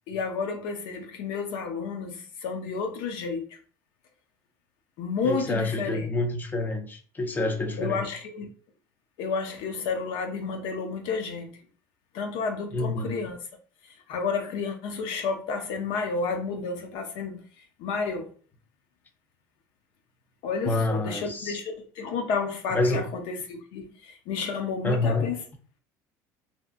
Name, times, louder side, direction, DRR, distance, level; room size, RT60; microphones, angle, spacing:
voice 1, 0.1-3.5 5.0-6.1 7.8-8.5 9.2-11.5 12.1-13.4 14.1-17.4 17.8-18.3 20.4-25.4, left 5 dB, 70° left, 0.5 m, -31 dB
voice 2, 5.2-8.0 12.7-13.2 20.6-21.6 22.7-23.1 24.8-25.3, left 2 dB, 20° left, 0.5 m, -27 dB
2.7 x 2.2 x 2.4 m
supercardioid pair, 105°, 8 cm